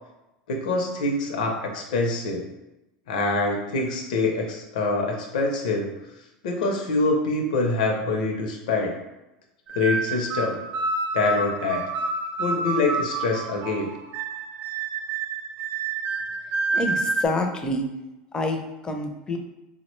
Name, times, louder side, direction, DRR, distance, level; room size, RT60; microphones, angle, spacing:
voice 1, 0.5-2.5 3.1-5.9 6.4-8.9 9.7-10.6 11.1-11.9 12.4-13.9, left 3 dB, 80° left, 1 dB, 0.6 m, -25 dB
sound 1, 9.7-17.2, right 3 dB, 45° right, 0.4 m, -28 dB
voice 2, 16.7-17.9 18.3-19.4, left 2 dB, 20° left, 4 dB, 0.5 m, -27 dB
3.6 x 2.1 x 3.0 m, 0.96 s
supercardioid pair, 115°, 4 cm